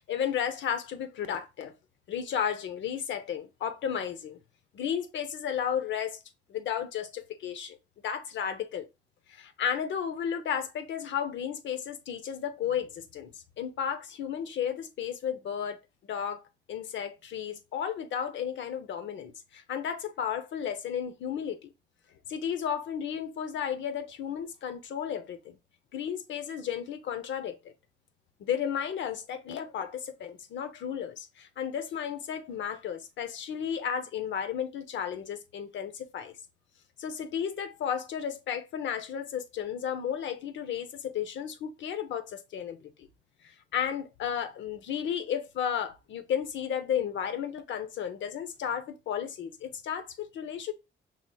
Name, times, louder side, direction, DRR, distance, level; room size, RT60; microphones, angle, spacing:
voice 1, 0.1-1.7 2.1-4.4 4.7-6.2 6.5-7.8 8.0-8.9 9.3-13.3 13.6-15.8 16.1-21.7 22.3-25.6 25.9-27.7 28.4-36.4 37.0-43.1 43.4-50.7, left 8 dB, 70° left, 0.7 m, -33 dB
5.6 x 3.0 x 2.3 m
cardioid pair, 90°, 20 cm